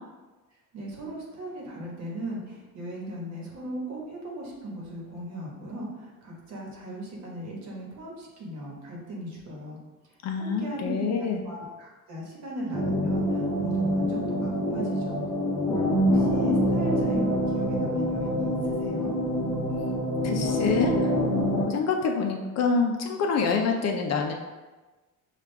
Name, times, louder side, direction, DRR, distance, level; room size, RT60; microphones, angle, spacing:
voice 1, 0.7-9.8 10.3-15.3 16.1-19.2, equal, 55° right, -3 dB, 1.3 m, -37 dB
voice 2, 10.2-11.4 20.2-24.3, left 5 dB, 50° left, 2 dB, 0.5 m, -27 dB
sound 1, 12.7-21.6, equal, 5° left, 0.6 m, -26 dB
6.1 x 2.4 x 3.4 m, 1.2 s
cardioid pair, 175°, 34 cm